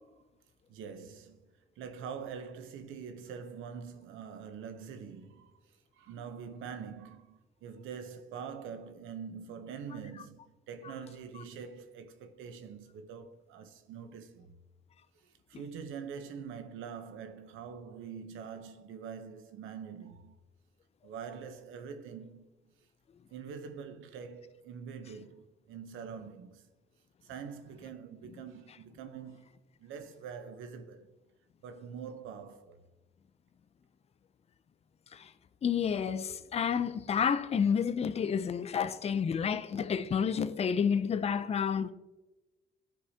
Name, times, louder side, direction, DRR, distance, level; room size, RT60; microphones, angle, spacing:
voice 1, 0.7-1.5 1.8-14.6 15.2-20.4 21.0-22.5 23.3-26.7 27.2-29.5 29.8-31.1 31.6-32.8, right 6 dB, 90° right, 0.8 m, -44 dB
voice 2, 35.6-41.9, left 7 dB, 30° left, 0.4 m, -30 dB
11.5 x 4.9 x 2.7 m
cardioid pair, 90°, 20 cm